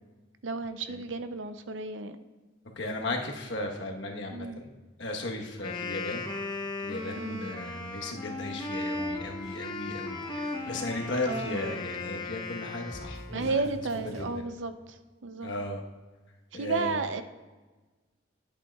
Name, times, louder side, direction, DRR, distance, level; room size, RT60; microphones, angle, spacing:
voice 1, 0.4-2.2 4.3-4.6 7.2-7.4 11.2-11.6 13.3-15.5 16.5-17.2, right 4 dB, 80° right, 10 dB, 0.6 m, -33 dB
voice 2, 2.8-4.7 5.0-6.3 6.8-13.6 14.0-14.3 15.4-15.8 16.5-16.9, left 2 dB, 70° left, 1 dB, 1.1 m, -36 dB
Wind instrument woodwind instrument, 5.5-13.5, left 2 dB, 25° left, 0.8 m, -37 dB
sound 1, 8.9-14.2, left 1 dB, 60° right, 2.7 m, -47 dB
10.5 x 8.4 x 2.3 m, 1.2 s
head